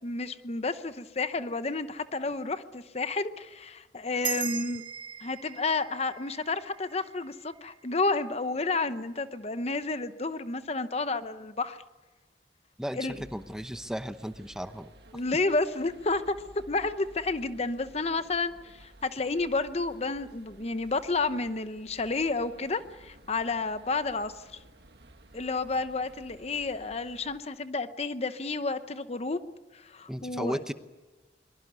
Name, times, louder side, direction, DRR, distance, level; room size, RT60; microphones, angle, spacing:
voice 1, 0.0-4.8 5.2-11.8 12.9-13.2 15.1-16.2 16.7-24.4 25.3-29.4 29.7-30.6, left 3 dB, 35° left, 11 dB, 0.9 m, -31 dB
sound 1, 4.2-8.9, right 7 dB, 30° right, 0.8 m, -40 dB
voice 2, 12.8-14.9 30.1-30.7, equal, 5° right, 9 dB, 0.9 m, -35 dB
sound 2, 13.1-27.4, right 1 dB, 65° right, 1.7 m, -55 dB
23.5 x 22.5 x 9.5 m, 1.2 s
head